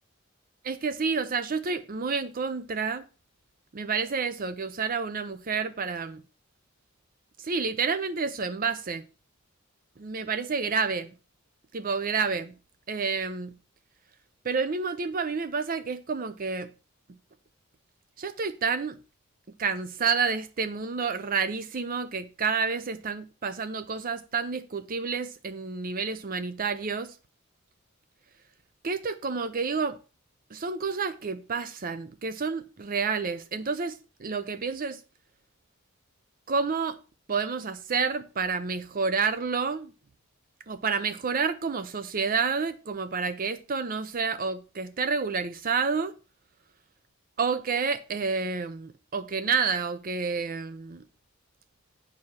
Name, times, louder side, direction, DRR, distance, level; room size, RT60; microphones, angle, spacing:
voice 1, 0.6-3.0 3.7-6.2 7.4-9.0 10.0-11.1 11.7-12.5 12.9-13.6 14.4-16.7 18.2-19.0 19.6-27.1 28.8-30.0 30.5-35.0 36.5-37.0 37.3-39.9 40.7-46.1 47.4-51.0, right 5 dB, 45° right, 0.6 m, -29 dB
9.9 x 4.8 x 5.6 m
head